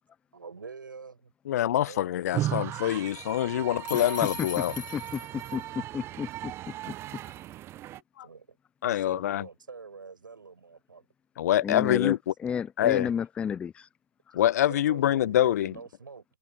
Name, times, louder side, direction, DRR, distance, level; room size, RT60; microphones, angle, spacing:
voice 1, 0.3-1.3 1.8-2.5 8.2-8.6 8.8-11.1 14.7-16.2, right 5 dB, 75° right, 6.1 m, -46 dB
voice 2, 1.5-4.7 8.2-8.3 8.8-9.5 11.4-12.3 12.8-13.1 14.3-15.7, left 12 dB, 50° left, 1.0 m, -25 dB
sound 1, 2.3-8.0, right 13 dB, 25° right, 1.1 m, -36 dB
sound 2, 3.8-5.6, left 7 dB, 70° left, 3.2 m, -40 dB
voice 3, 3.9-4.5 4.8-6.5 11.6-12.2 12.4-13.9 14.3-14.4, left 7 dB, 10° left, 0.3 m, -32 dB
figure-of-eight pair, 115°, 11 cm